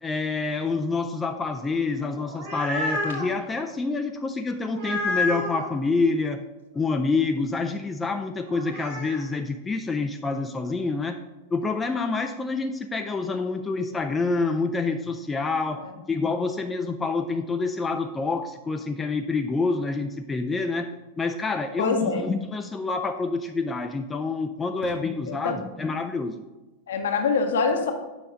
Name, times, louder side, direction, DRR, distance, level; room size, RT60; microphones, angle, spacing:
voice 1, 0.0-6.5 6.7-11.2 11.5-20.9 21.2-26.4, left 3 dB, 15° left, 6 dB, 0.4 m, -27 dB
sound 1, 2.1-3.3 4.7-5.7 8.5-9.2, left 2 dB, 55° right, 2.3 m, -29 dB
voice 2, 21.8-22.2 25.3-25.6 26.9-27.9, left 4 dB, 60° left, 5 dB, 0.9 m, -24 dB
7.5 x 5.3 x 3.7 m, 1.1 s
figure-of-eight pair, 90°, 0 cm